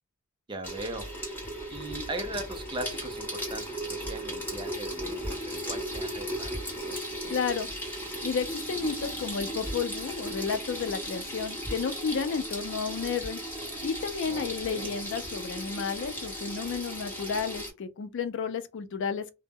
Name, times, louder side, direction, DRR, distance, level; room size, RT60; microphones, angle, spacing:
voice 1, 0.5-1.1 1.7-7.0 14.2-14.9, right 1 dB, 20° right, 0.4 m, -39 dB
Water tap faucet / Sink (filling or washing), 0.6-17.7, equal, 10° left, 0.9 m, -36 dB
voice 2, 7.3-7.7 8.2-13.4 13.8-19.4, left 6 dB, 55° left, 0.4 m, -32 dB
2.1 x 2.0 x 3.4 m
head